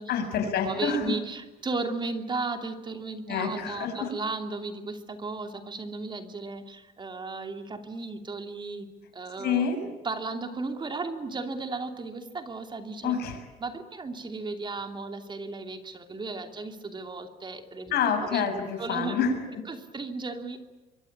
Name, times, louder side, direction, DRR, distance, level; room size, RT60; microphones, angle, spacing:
voice 1, 0.1-1.1 3.3-4.1 9.4-9.8 13.0-13.4 17.9-19.6, left 6 dB, 70° left, 6 dB, 6.8 m, -27 dB
voice 2, 0.6-8.9 9.1-9.7 10.0-13.1 13.6-18.4 18.8-19.2 19.7-20.6, right 3 dB, 25° right, 6 dB, 2.9 m, -35 dB
25.5 x 23.0 x 8.8 m, 1.1 s
cardioid pair, 110°, 17 cm